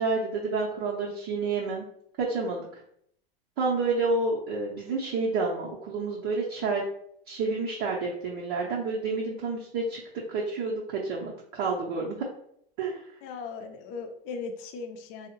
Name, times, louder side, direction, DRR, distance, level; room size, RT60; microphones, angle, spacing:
voice 1, 0.0-1.9 2.2-2.8 3.6-6.8 7.3-10.0 10.3-12.2 12.8-13.0, right 3 dB, 50° right, -3 dB, 0.7 m, -29 dB
voice 2, 13.2-15.3, left 4 dB, 45° left, 6 dB, 0.5 m, -38 dB
3.4 x 2.0 x 2.8 m, 0.69 s
hypercardioid pair, 90°, 30 cm